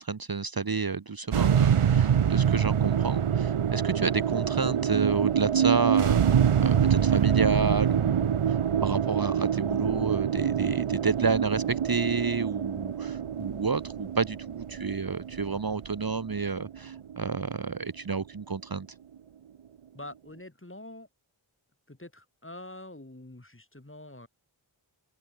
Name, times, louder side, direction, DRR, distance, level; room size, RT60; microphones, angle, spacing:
voice 1, 0.0-18.9, right 4 dB, 45° right, 1.1 m, -30 dB
sound 1, 1.3-17.7, right 8 dB, 85° right, 0.8 m, -25 dB
voice 2, 19.9-21.1 21.9-24.3, left 1 dB, 25° left, 3.7 m, -45 dB
open air
wide cardioid pair, 45°, 49 cm